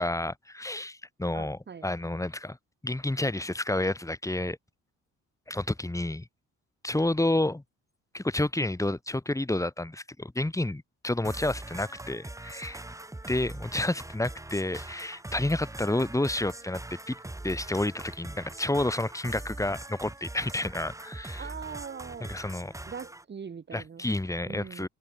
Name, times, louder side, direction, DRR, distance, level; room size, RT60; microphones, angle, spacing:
voice 1, 0.0-2.6 2.8-4.6 5.5-6.3 6.8-7.6 8.1-12.8 13.3-16.8 17.1-17.2 17.4-21.4 22.2-22.7 23.7-24.9, left 1 dB, 10° left, 3.5 m, -30 dB
voice 2, 1.3-1.9 21.4-22.4 22.9-24.1 24.5-24.9, right 6 dB, 35° right, 1.9 m, -41 dB
sound 1, 11.2-23.2, right 2 dB, 10° right, 2.5 m, -42 dB
open air
cardioid pair, 90°, 30 cm